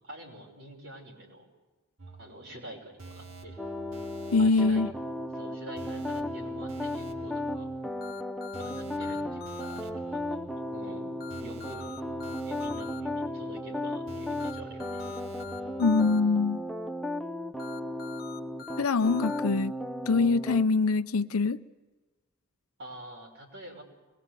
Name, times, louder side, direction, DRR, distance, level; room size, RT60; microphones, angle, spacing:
voice 1, 0.0-1.5 2.2-3.6 4.4-4.9 5.3-7.7 8.6-10.4 10.7-11.9 12.4-15.0 22.8-23.8, right 1 dB, 60° right, 6.1 m, -46 dB
sound 1, 2.0-16.1, right 3 dB, 75° right, 2.0 m, -48 dB
sound 2, 3.6-20.6, left 1 dB, ahead, 0.7 m, -35 dB
voice 2, 4.3-4.9 15.8-16.6 18.8-19.7 20.1-21.6, left 4 dB, 85° left, 0.7 m, -24 dB
sound 3, 8.0-9.8 11.2-13.0 14.4-16.2 17.6-19.4, left 9 dB, 45° left, 1.0 m, -45 dB
24.0 x 20.5 x 8.3 m
head